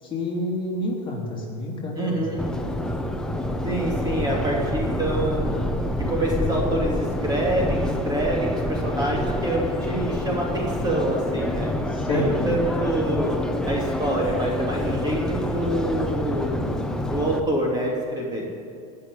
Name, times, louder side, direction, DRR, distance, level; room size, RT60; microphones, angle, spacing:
voice 1, 0.0-2.2 11.9-12.5, left 2 dB, 25° left, -3 dB, 3.2 m, -28 dB
voice 2, 2.0-2.4 3.6-5.6 6.1-11.7 12.1-13.4 13.7-16.6 17.0-18.4, right 1 dB, 20° right, -2 dB, 2.9 m, -26 dB
Subway metro underground, 2.4-17.4, left 1 dB, 5° left, 0.9 m, -27 dB
18.5 x 6.7 x 9.5 m, 2.4 s
supercardioid pair, 135°, 20 cm